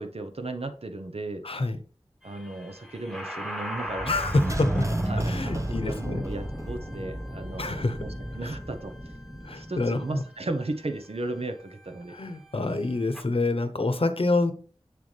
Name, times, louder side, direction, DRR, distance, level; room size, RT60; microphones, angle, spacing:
voice 1, 0.0-1.4 2.2-4.1 5.1-8.1 8.4-9.1 9.5-12.1, right 2 dB, 75° right, 7 dB, 0.9 m, -35 dB
voice 2, 1.4-1.8 4.1-4.8 5.2-6.2 7.6-8.0 8.4-8.6 9.4-10.2 12.1-14.5, left 2 dB, 65° left, 10 dB, 0.9 m, -27 dB
sound 1, 2.2-13.2, equal, ahead, 1.2 m, -36 dB
sound 2, 4.2-7.0 7.3-7.4, right 2 dB, 30° right, 0.9 m, -31 dB
6.9 x 6.7 x 3.3 m, 0.38 s
wide cardioid pair, 40°, 10 cm